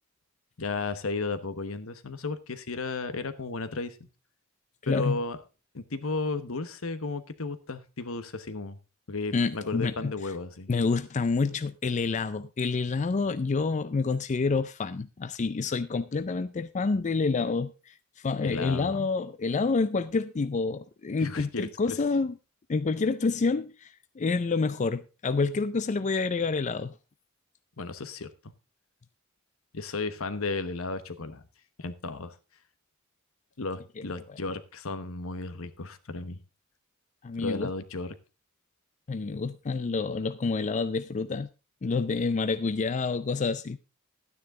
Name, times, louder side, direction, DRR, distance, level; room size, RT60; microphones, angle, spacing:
voice 1, 0.6-4.1 4.9-5.4 5.7-8.8 9.1-10.7 18.4-19.1 21.2-21.9 27.8-28.5 29.7-31.4 31.8-32.3 33.6-36.4 37.4-38.1, left 3 dB, 75° left, 1.1 m, -34 dB
voice 2, 4.8-5.2 9.3-10.1 10.7-22.4 22.7-26.9 37.2-37.7 39.1-41.5 41.8-43.8, left 4 dB, 35° left, 0.4 m, -28 dB
12.0 x 9.7 x 3.7 m
head